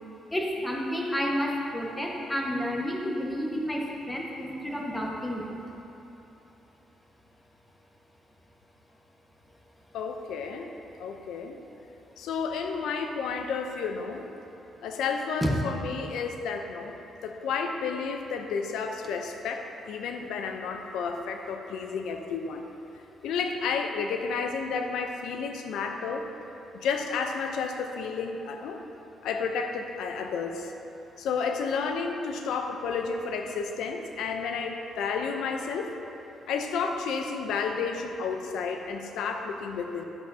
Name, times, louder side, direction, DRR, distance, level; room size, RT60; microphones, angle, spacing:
voice 1, 0.3-5.6 15.4-15.6, equal, 15° left, -2 dB, 1.3 m, -30 dB
voice 2, 9.9-10.7 11.0-11.6 12.2-14.2 14.8-16.9 17.2-22.6 23.2-26.3 26.7-28.8 29.2-30.7 31.2-36.0 36.5-40.1, left 5 dB, 85° left, 4 dB, 0.6 m, -31 dB
10.5 x 8.0 x 2.7 m, 3.0 s
cardioid pair, 90°, 0 cm